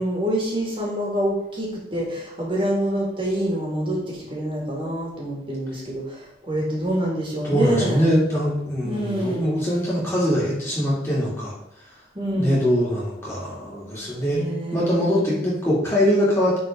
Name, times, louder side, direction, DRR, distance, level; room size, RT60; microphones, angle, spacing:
voice 1, 0.0-8.1 8.8-9.6 12.1-12.6 14.3-15.2, right 1 dB, 25° right, -3 dB, 2.3 m, -26 dB
voice 2, 7.4-11.5 12.3-16.6, equal, 15° left, -7 dB, 2.9 m, -22 dB
9.8 x 4.4 x 3.8 m, 0.83 s
head